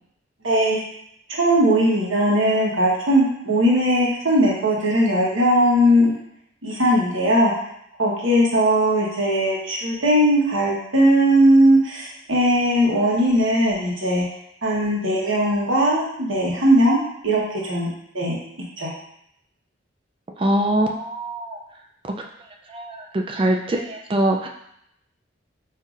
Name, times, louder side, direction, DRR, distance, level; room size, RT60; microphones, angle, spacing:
voice 1, 0.4-0.8 1.3-6.1 6.6-7.5 8.0-14.2 14.6-17.0 17.2-18.4 18.8-18.9, equal, 85° right, -4 dB, 1.2 m, -19 dB
voice 2, 20.4-21.6 22.7-23.0 23.3-24.5, right 1 dB, 25° right, 2 dB, 0.3 m, -22 dB
5.5 x 2.7 x 2.4 m, 0.75 s
head